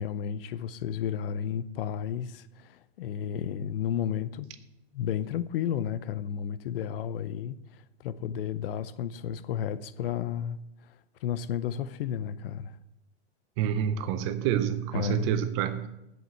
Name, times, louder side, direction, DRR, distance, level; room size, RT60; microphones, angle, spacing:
voice 1, 0.0-4.5 4.9-7.6 8.0-10.6 11.2-12.8 14.9-15.3, left 9 dB, 55° left, 0.7 m, -32 dB
voice 2, 13.6-15.9, right 10 dB, 25° right, 0.5 m, -28 dB
8.2 x 7.5 x 7.8 m
supercardioid pair, 155°, 33 cm